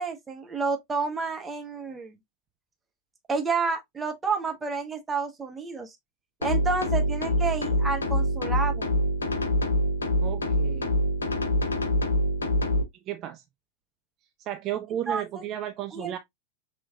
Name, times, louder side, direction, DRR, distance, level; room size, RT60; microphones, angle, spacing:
voice 1, 0.0-2.2 3.3-6.0 6.4-8.9 15.1-15.2 15.9-16.1, right 4 dB, 15° right, 1.0 m, -30 dB
sound 1, 6.4-12.8, equal, 75° left, 0.7 m, -25 dB
voice 2, 10.2-10.9 13.1-13.4 14.4-16.2, right 11 dB, 35° right, 0.4 m, -33 dB
5.3 x 3.1 x 2.2 m
figure-of-eight pair, 90°, 0 cm